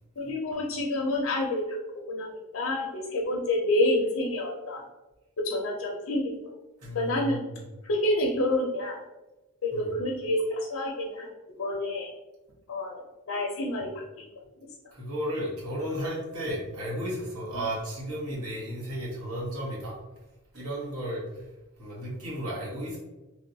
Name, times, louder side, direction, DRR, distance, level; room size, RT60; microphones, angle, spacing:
voice 1, 0.2-1.8 2.1-4.8 5.4-6.3 6.9-7.4 7.8-9.0 9.6-11.3 11.6-12.1 12.7-13.0 13.3-14.3, left 1 dB, 65° left, -1 dB, 0.4 m, -28 dB
voice 2, 6.8-7.6 9.7-9.9 14.9-20.0 20.5-21.4 21.8-23.0, equal, 90° right, -5 dB, 1.1 m, -34 dB
3.2 x 2.2 x 2.6 m, 1.1 s
head